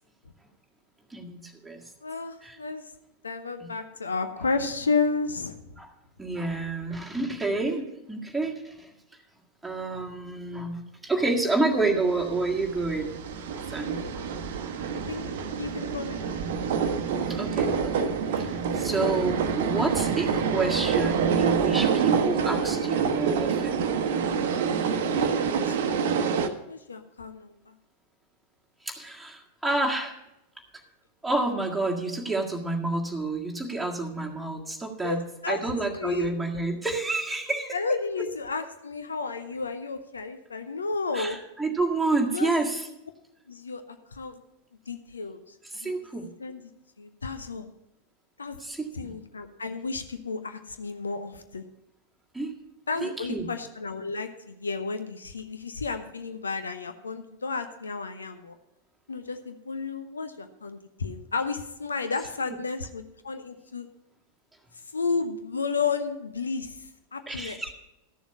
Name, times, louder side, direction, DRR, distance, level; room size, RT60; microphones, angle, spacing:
voice 1, 1.1-1.8 2.4-2.6 3.6-3.7 5.8-5.9 6.2-8.9 9.6-13.2 13.5-14.2 17.3-23.8 28.8-30.2 31.2-35.2 35.5-37.8 41.1-42.9 45.7-46.3 48.6-49.1 52.3-52.5 53.0-53.5 67.3-67.7, right 2 dB, 5° right, -1 dB, 1.8 m, -29 dB
voice 2, 2.0-2.9 3.2-5.8 13.7-14.2 15.1-15.3 15.6-16.2 25.6-25.8 26.7-27.7 35.0-35.6 35.9-36.3 37.7-41.4 42.3-42.5 43.5-44.4 44.9-45.5 45.8-46.0 46.4-46.7 47.0-47.7 48.4-48.6 48.9-51.6 52.9-58.6 59.1-63.9 64.9-67.6, left 4 dB, 75° left, 8 dB, 0.8 m, -32 dB
sound 1, 12.1-26.5, right 6 dB, 55° right, 0.9 m, -27 dB
13.5 x 7.1 x 5.4 m, 0.89 s
figure-of-eight pair, 90°, 0 cm